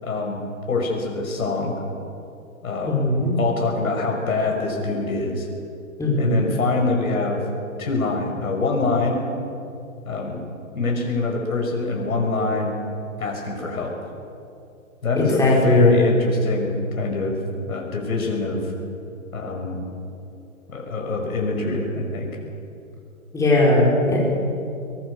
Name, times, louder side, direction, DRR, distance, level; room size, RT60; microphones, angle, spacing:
voice 1, 0.0-1.7 2.6-3.0 3.4-5.5 6.2-7.4 7.8-9.2 10.0-10.4 10.7-12.8 13.2-14.0 15.0-17.3 17.7-18.7 19.3-19.8 20.7-22.3, left 3 dB, 75° left, 0 dB, 6.3 m, -24 dB
voice 2, 2.9-3.3 6.0-6.4 15.2-16.0 23.3-24.2, left 2 dB, 5° left, -4 dB, 5.6 m, -18 dB
23.0 x 20.5 x 6.9 m, 2.6 s
hypercardioid pair, 145°, 42 cm